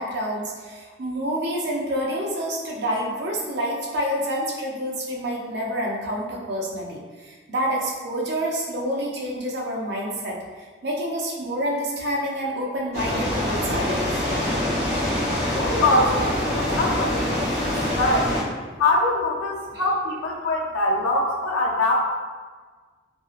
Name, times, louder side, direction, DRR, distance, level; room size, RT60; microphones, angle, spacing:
voice 1, 0.0-10.4 10.8-14.2, equal, 55° right, -2 dB, 0.5 m, -28 dB
sound 1, 12.9-18.4, left 1 dB, 15° right, 1.3 m, -25 dB
voice 2, 15.5-18.3 18.8-22.0, left 2 dB, 90° left, -2 dB, 0.6 m, -23 dB
2.8 x 2.6 x 2.4 m, 1.4 s
head